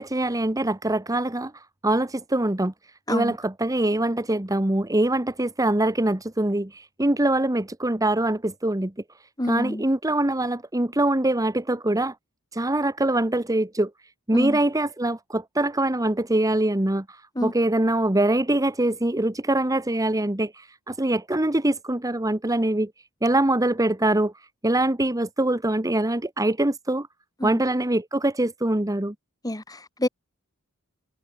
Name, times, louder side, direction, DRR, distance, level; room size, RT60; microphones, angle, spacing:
voice 1, 0.0-2.7 3.1-8.9 9.5-12.1 12.5-13.9 14.3-22.9 23.2-24.3 24.6-27.1 27.4-29.1, right 1 dB, 15° right, 1.2 m, -23 dB
voice 2, 9.4-9.8 14.3-14.6 17.4-17.5 27.4-27.6 29.4-30.1, left 1 dB, 15° left, 4.3 m, -28 dB
head